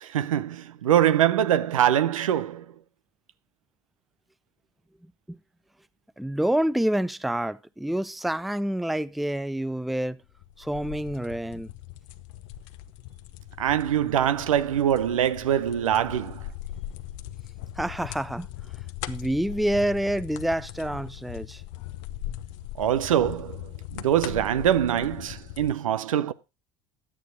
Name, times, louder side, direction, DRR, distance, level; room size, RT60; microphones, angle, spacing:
voice 1, 0.0-2.6 13.6-16.4 22.8-23.6 23.9-26.3, right 10 dB, 80° right, 0.7 m, -23 dB
voice 2, 6.2-10.2 10.6-11.7 17.8-18.5 19.1-21.6, right 1 dB, ahead, 0.5 m, -27 dB
sound 1, 10.3-25.7, left 13 dB, 65° left, 0.8 m, -40 dB
11.0 x 8.7 x 3.9 m
hypercardioid pair, 70°, 17 cm